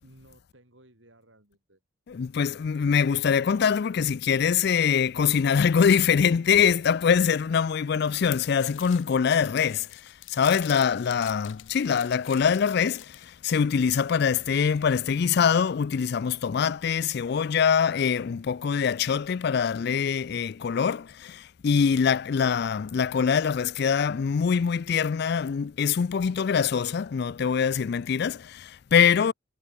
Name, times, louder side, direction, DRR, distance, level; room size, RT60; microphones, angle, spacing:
voice 1, 0.0-1.8 29.2-29.3, right 1 dB, 70° right, 7.8 m, -57 dB
voice 2, 2.1-29.3, left 7 dB, 55° left, 0.4 m, -24 dB
sound 1, 7.7-13.4, left 15 dB, 70° left, 0.9 m, -46 dB
head